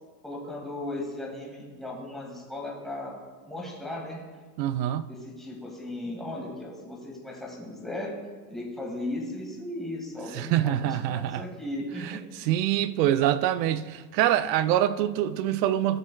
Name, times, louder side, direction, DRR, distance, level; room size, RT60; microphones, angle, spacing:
voice 1, 0.2-3.2 3.4-4.2 5.1-8.2 8.5-12.5, left 1 dB, ahead, 1.7 m, -36 dB
voice 2, 4.6-5.0 10.3-11.4 12.0-12.2 12.5-16.0, right 12 dB, 80° right, 0.6 m, -25 dB
15.0 x 6.3 x 2.3 m
supercardioid pair, 145°, 49 cm